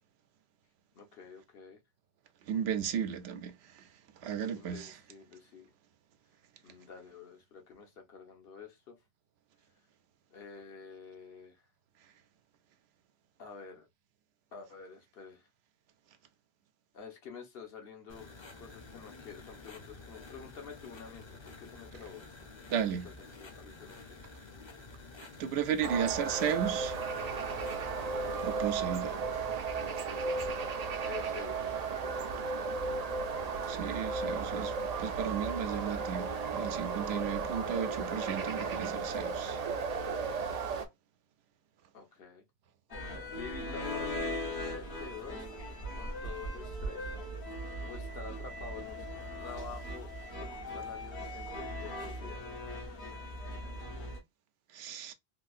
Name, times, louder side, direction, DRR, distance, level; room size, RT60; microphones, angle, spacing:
voice 1, 0.9-1.8 4.5-5.7 6.6-9.0 10.3-11.6 13.4-13.9 14.5-15.5 16.9-18.3 18.6-22.3 23.0-24.2 25.9-26.1 31.0-31.8 41.9-42.4 43.3-44.4 44.6-45.4 45.9-47.2 47.8-49.0 49.4-50.1 50.4-52.4, left 6 dB, 70° left, 1.1 m, -48 dB
voice 2, 2.5-3.8 4.2-4.9 22.7-23.1 25.4-27.0 28.3-29.5 33.7-39.6 54.7-55.1, right 8 dB, 80° right, 0.8 m, -34 dB
sound 1, 18.1-28.7, left 3 dB, 30° left, 0.6 m, -50 dB
sound 2, 25.8-40.9, right 4 dB, 50° right, 0.5 m, -35 dB
sound 3, 42.9-54.2, equal, 85° left, 1.4 m, -39 dB
3.3 x 2.6 x 2.3 m
omnidirectional pair, 1.1 m